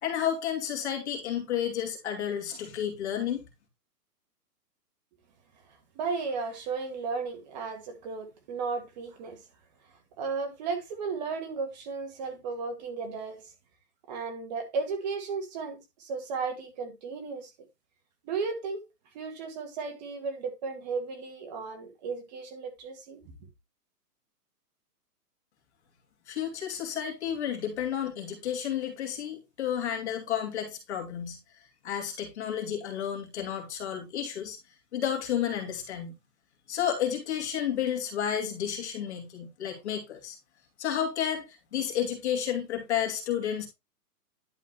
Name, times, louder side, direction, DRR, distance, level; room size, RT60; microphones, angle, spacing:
voice 1, 0.0-3.4 26.3-34.6 34.9-36.1 36.7-40.4 40.8-43.7, left 9 dB, 45° left, 2.5 m, -31 dB
voice 2, 6.0-9.4 10.2-13.4 14.1-17.5 18.2-18.8 19.1-23.2, right 4 dB, 25° right, 1.7 m, -34 dB
11.0 x 3.9 x 4.2 m
hypercardioid pair, 165°, 48 cm